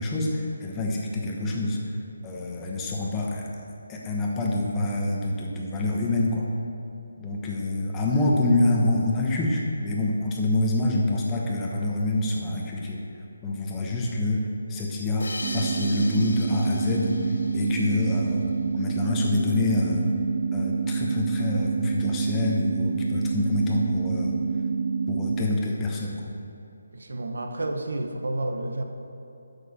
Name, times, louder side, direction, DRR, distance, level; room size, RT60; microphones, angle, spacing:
voice 1, 0.0-1.8 2.2-3.5 3.9-6.5 7.2-13.0 13.4-14.4 14.7-17.1 17.5-20.0 20.5-24.3 25.1-26.3, left 2 dB, 10° left, -2 dB, 1.0 m, -26 dB
sound 1, 15.2-18.5, left 2 dB, 80° left, 0.8 m, -39 dB
sound 2, 15.4-25.4, right 5 dB, 40° right, 0.5 m, -27 dB
voice 2, 26.9-28.8, right 2 dB, 80° right, 5 dB, 1.0 m, -30 dB
12.0 x 6.5 x 4.2 m, 2.7 s
hypercardioid pair, 170°, 0 cm